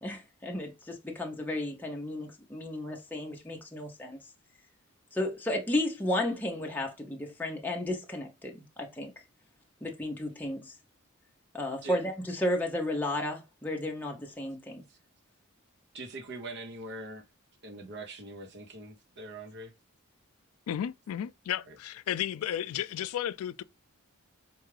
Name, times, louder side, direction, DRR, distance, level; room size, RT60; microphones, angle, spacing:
voice 1, 0.0-4.2 5.1-9.1 9.8-10.7 11.5-14.8, left 1 dB, 10° left, 0.6 m, -33 dB
voice 2, 15.9-17.2 17.6-19.7 21.7-21.8, right 2 dB, 50° right, 0.8 m, -42 dB
voice 3, 20.7-23.6, left 10 dB, 80° left, 0.3 m, -33 dB
4.5 x 2.4 x 3.2 m
head